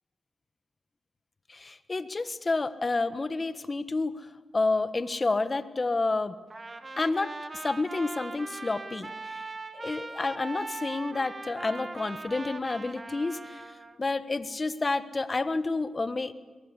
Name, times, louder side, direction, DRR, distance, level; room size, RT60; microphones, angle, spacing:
voice 1, 1.5-4.3 4.5-6.3 7.0-9.4 9.7-13.6 14.0-16.3, left 3 dB, 35° left, 12 dB, 1.4 m, -29 dB
Trumpet, 6.5-14.0, right 3 dB, 35° right, 1.8 m, -40 dB
22.5 x 19.5 x 8.3 m, 1.4 s
cardioid pair, 65°, 0 cm